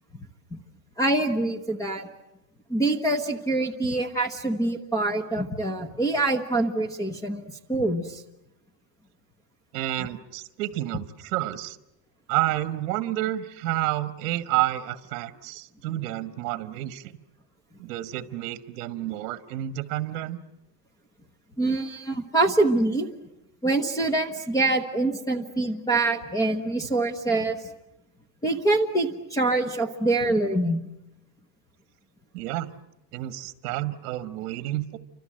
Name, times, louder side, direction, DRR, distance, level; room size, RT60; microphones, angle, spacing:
voice 1, 1.0-2.1 2.7-7.4 7.7-8.2 21.6-23.1 23.6-27.6 28.4-30.8, right 2 dB, 10° left, 8 dB, 0.9 m, -25 dB
voice 2, 9.7-11.8 12.3-17.1 17.8-20.4 32.3-32.7 33.1-35.0, right 15 dB, 60° right, 11 dB, 1.4 m, -30 dB
29.5 x 25.5 x 7.8 m, 0.89 s
cardioid pair, 175°, 46 cm